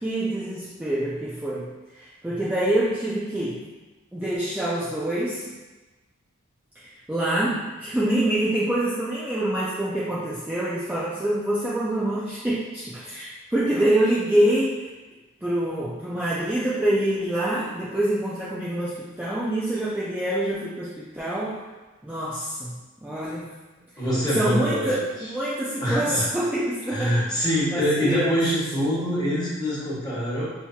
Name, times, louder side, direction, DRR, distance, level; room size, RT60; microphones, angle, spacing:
voice 1, 0.0-1.7 2.0-3.6 4.1-5.4 7.1-14.9 15.4-21.6 22.0-23.5 24.3-27.5 27.7-28.4, right 1 dB, 10° right, -8 dB, 0.5 m, -26 dB
voice 2, 24.0-25.0 25.8-26.3 26.9-30.5, equal, 20° left, -8 dB, 1.4 m, -24 dB
6.1 x 2.8 x 2.4 m, 1.2 s
head